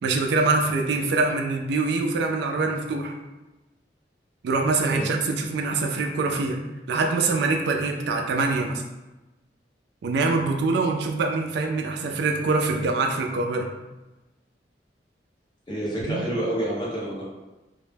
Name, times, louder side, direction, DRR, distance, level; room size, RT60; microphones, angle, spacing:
voice 1, 0.0-3.1 4.4-6.6 6.9-8.8 10.0-13.7 16.1-16.3, right 3 dB, 70° right, 3 dB, 0.3 m, -24 dB
voice 2, 15.7-17.3, right 1 dB, 25° left, -5 dB, 0.7 m, -28 dB
2.1 x 2.0 x 3.2 m, 1.1 s
head